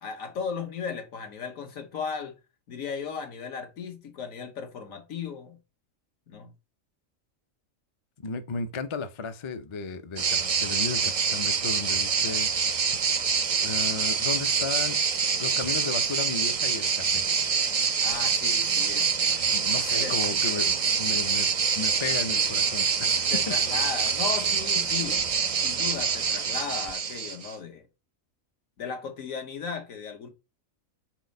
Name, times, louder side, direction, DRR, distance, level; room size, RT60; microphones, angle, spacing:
voice 1, 0.0-2.4 2.7-5.6 6.3-6.5 18.0-19.1 20.0-20.1 23.3-25.2 25.6-27.8 28.8-30.3, left 6 dB, 75° left, 1.5 m, -36 dB
voice 2, 8.2-12.5 13.6-15.0 15.4-17.3 19.4-21.5 21.7-23.6, left 4 dB, 50° left, 0.3 m, -34 dB
sound 1, 10.2-27.5, right 6 dB, 65° right, 0.3 m, -26 dB
4.6 x 4.1 x 5.2 m
omnidirectional pair, 1.4 m